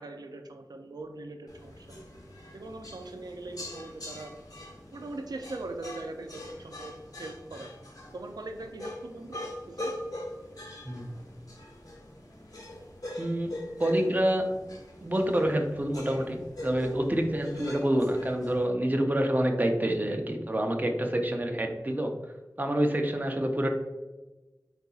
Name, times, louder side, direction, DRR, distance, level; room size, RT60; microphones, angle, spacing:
voice 1, 0.0-2.0 2.5-4.3 4.9-6.9 7.2-7.7 8.1-9.9, right 2 dB, 80° right, 5 dB, 0.3 m, -41 dB
sound 1, 1.5-18.7, left 1 dB, 65° left, 1.2 m, -43 dB
voice 2, 13.2-14.6 15.0-22.1 22.6-23.7, right 1 dB, 25° right, 3 dB, 0.6 m, -27 dB
4.1 x 3.9 x 2.3 m, 1.2 s
wide cardioid pair, 55°, 7 cm